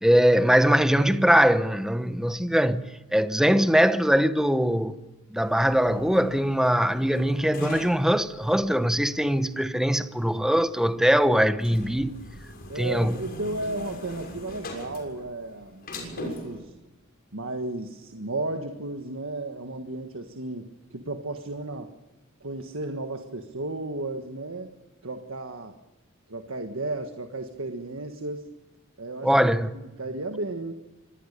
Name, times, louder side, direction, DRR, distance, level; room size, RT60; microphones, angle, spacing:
voice 1, 0.0-5.0 5.3-12.2 12.8-13.2 29.2-29.7, equal, 5° right, 1.0 m, -22 dB
sound 1, 5.4-16.6, equal, 45° left, 6.5 m, -42 dB
voice 2, 12.7-15.9 16.1-16.7 17.3-21.9 22.4-24.7 25.0-25.8 26.3-28.5 29.0-29.5 30.0-30.7, right 2 dB, 75° right, 1.6 m, -34 dB
25.5 x 18.5 x 6.8 m
head